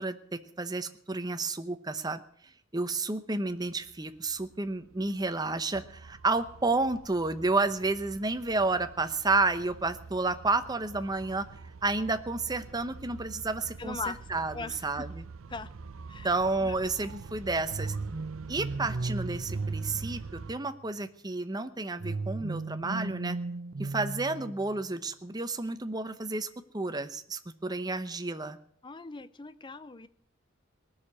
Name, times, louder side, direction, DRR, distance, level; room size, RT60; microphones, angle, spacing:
voice 1, 0.0-2.2 2.7-11.5 11.8-14.0 14.3-14.5 14.8-15.2 16.2-18.0 18.5-23.4 23.8-28.6, right 3 dB, 20° right, 9 dB, 0.9 m, -31 dB
sound 1, 3.5-20.5, right 4 dB, 90° right, 0.6 m, -46 dB
voice 2, 13.8-15.1 15.5-15.7 16.1-16.3 16.6-16.8 28.8-30.1, left 4 dB, 25° left, 14 dB, 0.6 m, -40 dB
sound 2, 17.7-20.8 22.0-24.9, right 3 dB, 55° right, 0.8 m, -35 dB
19.0 x 6.7 x 9.8 m, 0.65 s
head